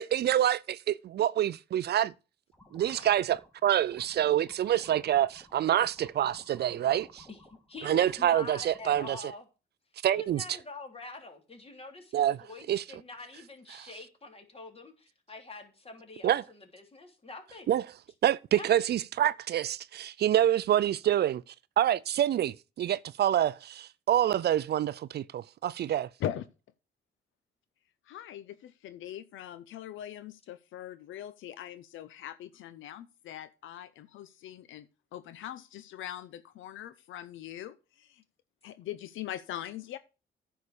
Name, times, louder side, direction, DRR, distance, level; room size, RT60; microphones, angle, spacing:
voice 1, 0.0-2.1 2.7-7.3 7.8-9.3 10.0-10.4 12.1-12.4 12.7-12.8 13.7-13.9 16.2-16.4 17.7-17.8 18.2-26.1, right 11 dB, 55° right, 0.4 m, -27 dB
sound 1, 2.5-9.2, left 1 dB, 10° left, 2.6 m, -56 dB
voice 2, 7.7-9.4 10.0-17.7 18.5-18.7, left 3 dB, 30° left, 3.2 m, -45 dB
voice 3, 28.1-38.2 38.6-40.0, left 11 dB, 80° left, 0.8 m, -41 dB
9.6 x 5.7 x 6.7 m
cardioid pair, 90°, 20 cm